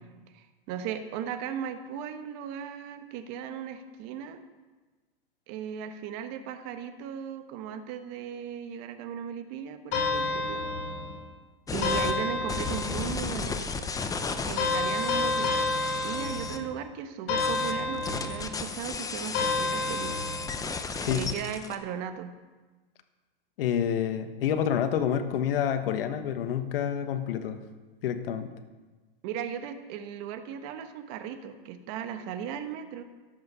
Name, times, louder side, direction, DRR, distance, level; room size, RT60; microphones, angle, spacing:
voice 1, 0.3-4.4 5.5-10.6 11.7-13.7 14.4-15.7 16.0-20.3 21.1-22.3 29.2-33.0, right 8 dB, 50° right, 8 dB, 1.2 m, -37 dB
sound 1, 9.9-11.2 11.8-13.1 14.6-16.7 17.3-18.6 19.3-20.6, left 3 dB, 50° left, 3.8 m, -29 dB
sound 2, 11.7-12.1 12.5-16.6 17.4-21.8, left 4 dB, 10° left, 0.7 m, -34 dB
voice 2, 23.6-27.6 28.0-28.5, left 9 dB, 70° left, 9 dB, 1.3 m, -28 dB
11.5 x 8.1 x 5.6 m, 1.3 s
hypercardioid pair, 125°, 29 cm